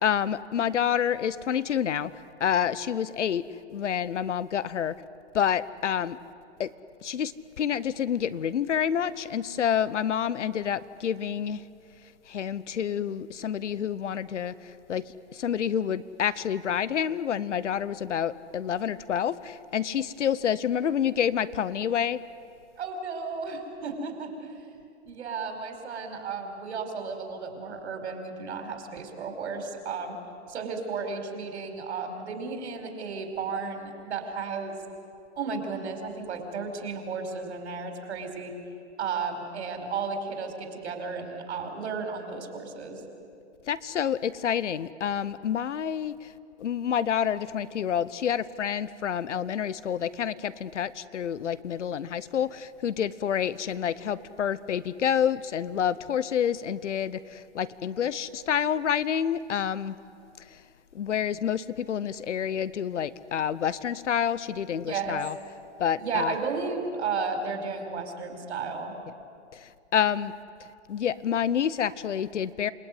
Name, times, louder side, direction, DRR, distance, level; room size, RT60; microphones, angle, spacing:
voice 1, 0.0-5.0 5.3-6.2 6.6-6.7 7.0-11.6 12.3-22.2 43.7-46.3 46.6-60.0 60.5-60.6 60.9-65.4 65.8-66.3 69.5-70.3 70.6-72.7, left 8 dB, 85° left, 17 dB, 1.1 m, -28 dB
voice 2, 22.8-24.7 25.0-30.2 30.5-34.8 35.4-38.5 39.0-43.0 64.8-65.2 66.0-68.9, right 5 dB, 70° right, 5 dB, 5.0 m, -33 dB
28.5 x 18.5 x 9.6 m, 2.4 s
hypercardioid pair, 145°, 35 cm